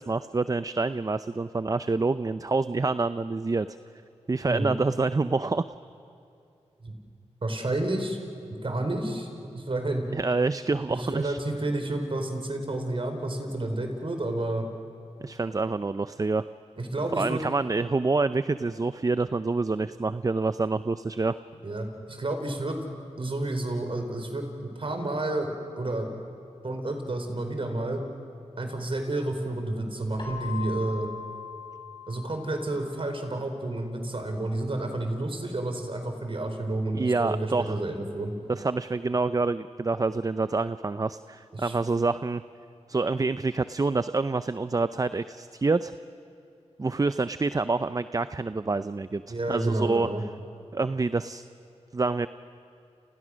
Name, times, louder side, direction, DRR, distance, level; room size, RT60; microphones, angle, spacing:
voice 1, 0.0-3.8 4.3-5.6 10.1-11.4 15.2-16.4 17.1-21.4 36.9-37.8 38.5-42.4 42.9-45.9 46.8-50.1 50.7-51.4 51.9-52.3, right 3 dB, 30° right, 13 dB, 0.6 m, -27 dB
voice 2, 7.4-8.2 8.6-10.0 10.9-14.7 16.8-17.4 21.6-22.8 23.2-25.5 25.8-26.1 26.6-28.0 28.6-31.1 32.1-38.3 41.5-41.7 49.3-50.2, right 2 dB, 50° right, 5 dB, 4.4 m, -30 dB
Keyboard (musical), 30.2-32.9, left 5 dB, 40° left, 5.7 m, -40 dB
30.0 x 29.5 x 6.4 m, 2.6 s
cardioid pair, 60°, 12 cm